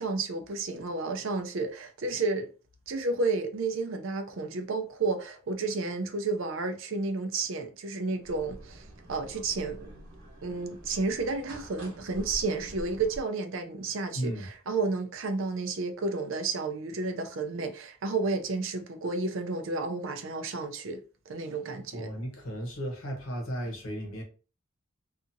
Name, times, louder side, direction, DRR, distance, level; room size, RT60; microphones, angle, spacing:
voice 1, 0.0-2.5 2.9-9.9 10.4-21.0 21.3-22.1, right 3 dB, 70° right, 0.5 m, -31 dB
sound 1, 8.2-13.2, right 1 dB, 90° right, 1.1 m, -46 dB
voice 2, 14.1-14.5 21.9-24.2, equal, 80° left, 0.9 m, -35 dB
2.7 x 2.4 x 2.6 m
head